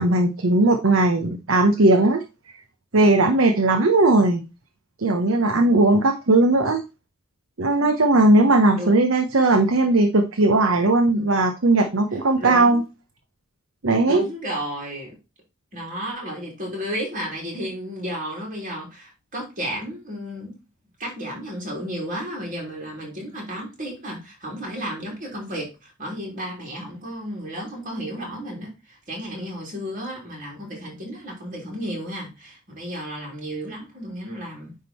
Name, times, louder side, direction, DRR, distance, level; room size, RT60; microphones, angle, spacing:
voice 1, 0.0-2.2 2.9-4.5 5.0-6.8 7.6-12.8 13.8-14.2, right 2 dB, 70° right, 0.9 m, -18 dB
voice 2, 12.4-12.9 14.0-15.2 15.7-20.5 21.0-34.8, equal, 40° right, 3.5 m, -33 dB
9.5 x 3.7 x 4.4 m
head